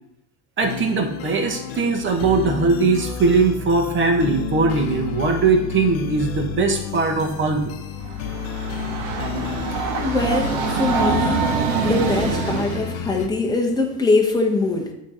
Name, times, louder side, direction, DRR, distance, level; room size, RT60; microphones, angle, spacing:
sound 1, 0.6-13.3, left 8 dB, 75° left, 0.7 m, -31 dB
voice 1, 0.6-7.7, right 4 dB, 30° right, 3 dB, 1.2 m, -20 dB
Train, 8.0-12.9, right 5 dB, 65° right, 1.1 m, -25 dB
voice 2, 10.0-11.5 11.8-14.9, left 3 dB, 10° left, 0 dB, 1.0 m, -22 dB
8.8 x 3.2 x 4.3 m, 0.89 s
supercardioid pair, 120°, 41 cm